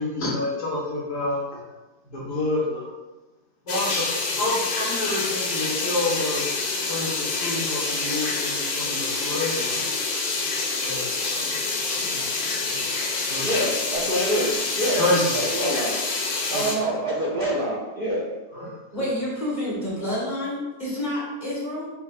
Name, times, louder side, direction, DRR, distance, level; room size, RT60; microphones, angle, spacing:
voice 1, 0.0-1.4 2.0-2.9 3.6-6.5 6.8-10.1 10.8-11.6 11.9-12.6 13.2-13.8 14.9-15.6 16.5-16.6 18.5-19.0, left 2 dB, 60° left, -10 dB, 1.5 m, -29 dB
sound 1, 3.7-16.7, left 3 dB, 85° left, 1.2 m, -27 dB
voice 2, 13.4-15.0 15.5-15.9 16.5-18.2, right 1 dB, 75° right, -4 dB, 0.4 m, -26 dB
voice 3, 18.9-21.9, left 1 dB, 30° left, -7 dB, 1.6 m, -28 dB
5.6 x 2.2 x 2.4 m, 1.1 s
omnidirectional pair, 1.6 m